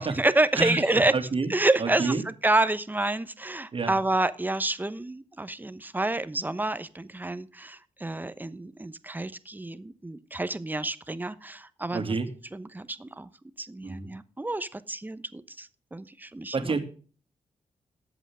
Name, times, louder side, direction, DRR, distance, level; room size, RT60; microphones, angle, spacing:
voice 1, 0.0-1.1 1.5-2.2 2.4-12.1 12.5-13.3 13.6-16.7, right 2 dB, 15° right, 13 dB, 0.9 m, -28 dB
voice 2, 0.5-1.5 1.8-2.2 3.7-4.0 11.9-12.3 13.8-14.1 16.5-16.8, right 4 dB, 45° right, 7 dB, 2.2 m, -28 dB
13.0 x 8.2 x 3.6 m, 0.39 s
cardioid pair, 80°, 12 cm